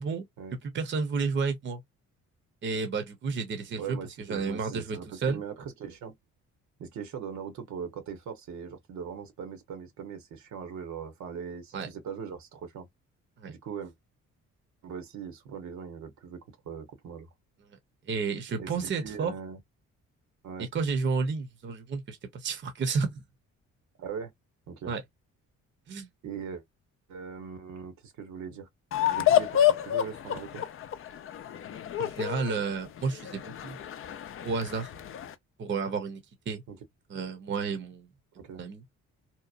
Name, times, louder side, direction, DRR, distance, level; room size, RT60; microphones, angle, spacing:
voice 1, 0.6-1.8 2.6-4.0 4.3-5.4 11.7-11.9 13.4-13.5 18.1-19.3 20.6-23.2 24.8-25.0 25.9-26.1 32.0-33.8 34.4-34.9 35.6-36.2 36.5-36.6 37.1-38.1 38.5-38.8, right 4 dB, 40° right, 0.7 m, -31 dB
voice 2, 3.8-6.2 6.8-12.9 13.5-13.9 14.8-17.3 18.6-19.6 20.4-20.7 24.0-24.3 24.7-24.9 26.2-26.6 27.1-28.7 29.1-30.7 36.7-36.8 38.3-38.6, right 7 dB, 70° right, 1.0 m, -40 dB
sound 1, 28.9-35.3, left 11 dB, 45° left, 0.4 m, -29 dB
2.9 x 2.0 x 2.4 m
cardioid pair, 90°, 30 cm